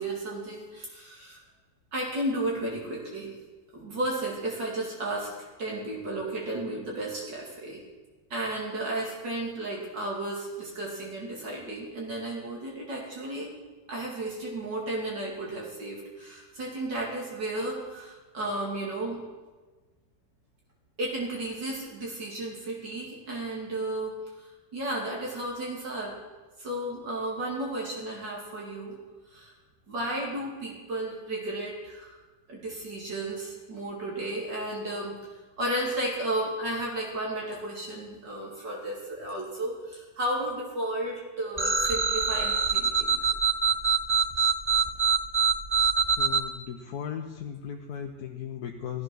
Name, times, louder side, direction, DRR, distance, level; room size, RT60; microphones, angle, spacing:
voice 1, 0.0-1.4 1.9-3.3 3.7-5.3 5.6-7.8 8.3-13.5 13.9-19.2 21.0-24.1 24.7-26.2 26.6-29.0 29.3-29.5 29.9-32.2 32.5-35.2 35.6-43.2, right 1 dB, 65° right, -3 dB, 3.3 m, -33 dB
sound 1, 41.6-46.4, right 5 dB, 35° right, 0.4 m, -24 dB
voice 2, 46.2-49.0, left 8 dB, 60° left, 2 dB, 1.2 m, -37 dB
15.5 x 11.0 x 6.3 m, 1.3 s
omnidirectional pair, 2.0 m